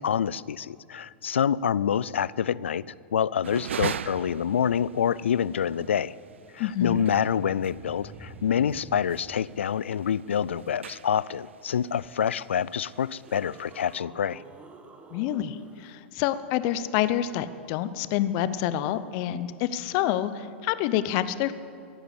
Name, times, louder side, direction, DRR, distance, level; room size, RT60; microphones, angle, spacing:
voice 1, 0.0-2.8 3.1-6.1 6.5-14.4, left 8 dB, 80° left, 22 dB, 0.4 m, -27 dB
sound 1, 3.4-14.0, right 8 dB, 80° right, 0.4 m, -41 dB
sound 2, 6.2-6.3 6.4-9.5 12.0-12.1 12.8-15.9 18.4-18.5, right 3 dB, 20° right, 1.3 m, -48 dB
voice 2, 6.6-7.0 15.1-21.5, left 12 dB, 50° left, 14 dB, 0.8 m, -27 dB
15.5 x 11.0 x 8.3 m, 2.5 s
hypercardioid pair, 100°, 6 cm